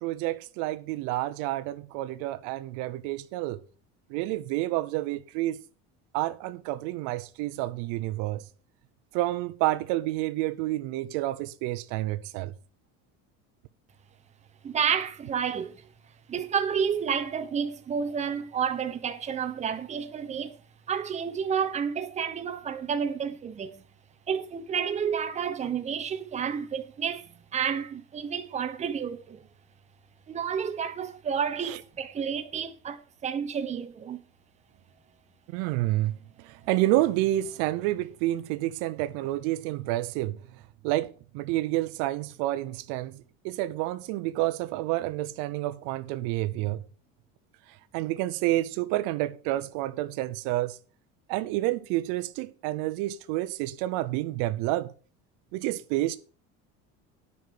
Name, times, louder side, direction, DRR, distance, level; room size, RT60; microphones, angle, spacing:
voice 1, 0.0-3.6 4.1-5.6 6.1-8.5 9.1-12.5 31.6-31.8 35.5-40.4 40.8-46.8 47.9-50.8 51.3-54.9 55.5-56.2, right 16 dB, 80° right, 0.7 m, -29 dB
voice 2, 14.6-15.8 16.3-20.5 20.9-23.8 24.3-27.3 27.5-29.4 30.3-34.2, right 7 dB, 25° right, 0.9 m, -30 dB
9.6 x 5.4 x 6.3 m
cardioid pair, 145°, 30 cm